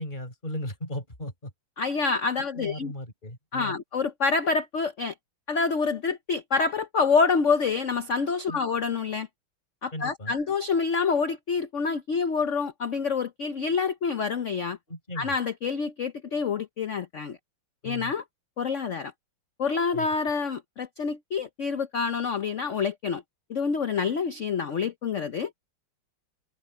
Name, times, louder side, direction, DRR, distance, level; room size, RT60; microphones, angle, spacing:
voice 1, 0.0-1.5 2.5-3.8 8.5-8.6 9.9-10.3 14.9-15.4 17.8-18.1 19.9-20.1, left 1 dB, 20° left, 6.7 m, -36 dB
voice 2, 1.8-2.9 3.5-5.1 5.5-9.3 9.8-14.8 15.2-17.4 17.8-18.2 18.6-19.1 19.6-23.2 23.5-25.5, left 5 dB, 75° left, 0.6 m, -27 dB
omnidirectional pair, 2.4 m